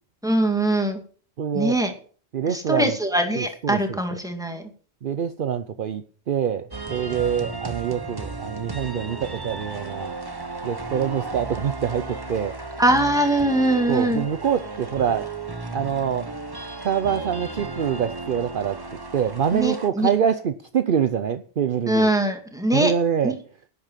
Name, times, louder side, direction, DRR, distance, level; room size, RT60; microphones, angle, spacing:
voice 1, 0.2-1.0 1.5-1.9 2.5-4.6 12.8-14.2 19.5-20.1 21.9-22.9 23.2-23.3, right 1 dB, 5° right, 2.2 m, -22 dB
voice 2, 1.4-1.8 2.3-3.0 3.3-4.0 5.0-10.2 10.6-12.6 13.9-15.3 15.7-16.3 16.8-18.8 19.1-22.1 22.7-23.4, right 8 dB, 55° right, 0.8 m, -25 dB
sound 1, 6.7-19.9, right 3 dB, 20° right, 1.3 m, -34 dB
11.0 x 8.6 x 7.3 m
omnidirectional pair, 1.1 m